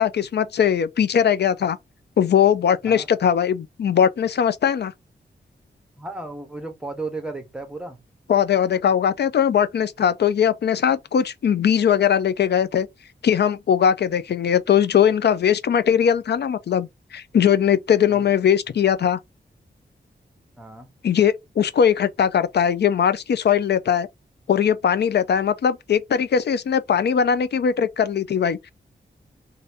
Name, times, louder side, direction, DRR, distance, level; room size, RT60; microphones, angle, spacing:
voice 1, 0.0-1.8 2.2-4.9 8.3-12.9 13.2-19.2 21.0-24.1 24.5-28.7, left 8 dB, 70° left, 0.4 m, -20 dB
voice 2, 6.0-8.0 18.1-18.3 20.6-20.9, right 2 dB, 5° right, 0.8 m, -34 dB
2.7 x 2.6 x 3.2 m
wide cardioid pair, 155°, 18 cm